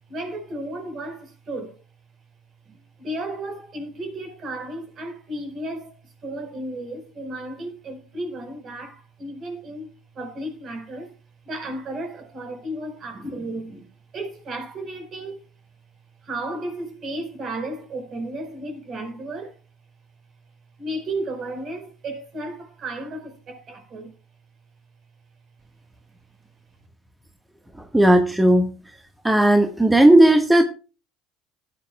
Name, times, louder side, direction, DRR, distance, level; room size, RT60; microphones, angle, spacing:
voice 1, 0.1-1.8 2.7-11.1 11.4-15.5 16.2-19.5 20.8-24.2, right 1 dB, 45° right, 4.5 m, -34 dB
voice 2, 27.7-29.0 29.2-30.6, right 1 dB, 10° right, 1.5 m, -16 dB
16.5 x 9.5 x 2.3 m
hypercardioid pair, 70°, 0 cm